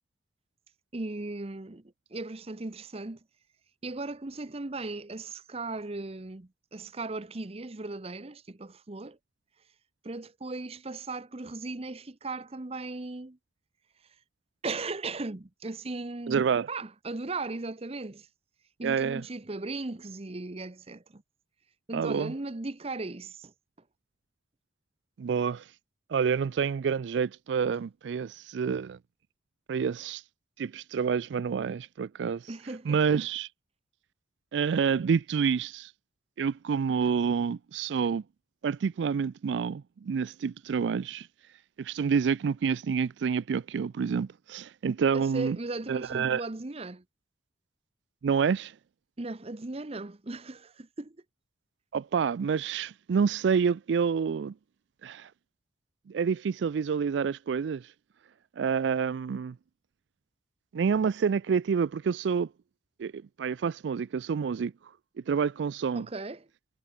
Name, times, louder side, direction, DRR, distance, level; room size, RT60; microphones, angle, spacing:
voice 1, 0.9-3.2 3.8-9.2 10.0-13.4 14.6-18.3 18.8-21.2 21.9-23.5 32.5-33.0 45.1-47.0 49.2-51.2 65.9-66.5, right 3 dB, 35° right, 0.8 m, -37 dB
voice 2, 16.3-16.7 18.8-19.2 21.9-22.3 25.2-25.7 26.1-29.0 29.7-30.2 30.6-32.5 32.9-33.5 34.5-35.9 36.4-38.2 38.6-41.3 41.8-45.6 45.9-46.4 48.2-48.7 51.9-54.5 55.0-55.3 56.1-57.9 58.6-59.6 60.7-62.5 63.0-64.7 65.3-66.1, right 6 dB, 75° right, 0.4 m, -28 dB
head